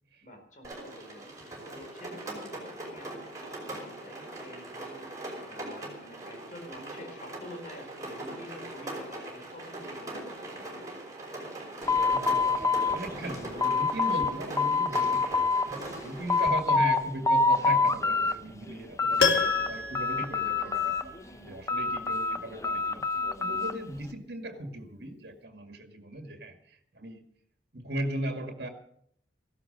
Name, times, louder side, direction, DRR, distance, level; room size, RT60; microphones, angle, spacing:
voice 1, 0.2-11.0 21.2-21.6, equal, 45° left, 3 dB, 4.4 m, -49 dB
Rain, 0.6-16.5, right 1 dB, 20° right, 5.3 m, -41 dB
sound 1, 11.9-14.3 14.6-15.7 16.0-17.0 17.3-18.3 18.7-19.7 19.9-21.2 21.7-23.8, left 4 dB, 15° left, 0.8 m, -26 dB
voice 2, 12.1-21.1 21.4-23.1 23.4-27.2 27.7-28.7, right 1 dB, 60° right, 6 dB, 2.0 m, -38 dB
Piano, 19.2-21.3 21.6-21.7, left 4 dB, 65° left, 2.1 m, -29 dB
15.0 x 12.5 x 6.6 m, 0.69 s
head